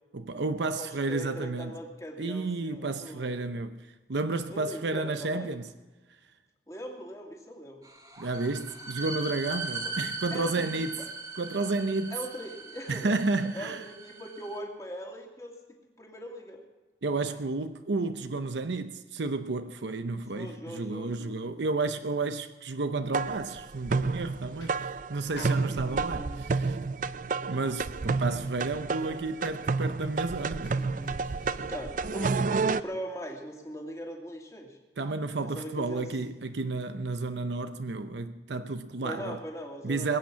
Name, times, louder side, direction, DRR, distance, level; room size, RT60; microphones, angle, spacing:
voice 1, 0.1-1.7 2.2-5.7 8.2-10.9 11.4-12.2 12.9-13.8 17.0-26.7 27.5-30.8 35.0-39.4 39.8-40.2, right 3 dB, 85° right, 0.7 m, -31 dB
voice 2, 0.8-3.4 4.5-5.5 6.7-7.9 9.8-9.9 10.3-10.9 12.1-13.2 13.5-16.6 20.3-21.8 25.4-26.4 30.8-31.2 31.5-34.8 35.5-36.1 39.0-40.2, equal, 20° left, 2.5 m, -41 dB
sound 1, 7.8-14.6, right 3 dB, 20° right, 1.9 m, -39 dB
sound 2, 23.1-32.8, right 4 dB, 45° right, 0.4 m, -30 dB
sound 3, 23.4-24.1 24.4-25.0 25.3-26.3 26.8-27.1 27.4-28.3 28.6-28.7 28.9-31.7, left 2 dB, 75° left, 3.7 m, -51 dB
21.0 x 8.9 x 7.4 m
head